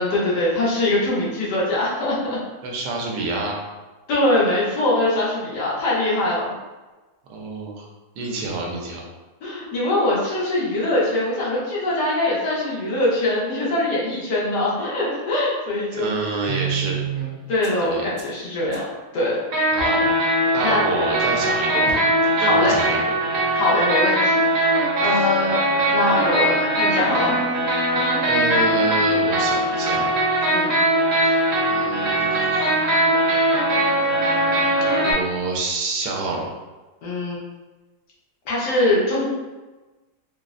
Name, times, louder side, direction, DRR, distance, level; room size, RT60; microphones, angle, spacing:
voice 1, 0.0-2.4 4.1-6.5 9.4-16.1 17.5-18.8 19.1-19.4 19.7-20.1 20.6-20.8 22.4-22.8 23.5-24.5 24.8-25.6 25.9-27.4 30.5-30.7 37.0-37.4 38.5-39.3, left 1 dB, 90° left, -6 dB, 1.5 m, -22 dB
voice 2, 2.6-3.6 7.3-7.9 8.2-9.0 15.9-17.0 17.8-18.1 19.7-20.0 20.5-21.9 22.2-23.0 25.1-25.2 28.3-30.1 31.7-33.1 35.0-36.5, right 3 dB, 85° right, 0 dB, 1.2 m, -28 dB
sound 1, 16.5-17.3 17.6-17.7 18.2-18.3 18.7-18.8 19.5-35.1, right 1 dB, 60° right, 1.1 m, -20 dB
3.6 x 2.0 x 2.4 m, 1.2 s
omnidirectional pair, 1.7 m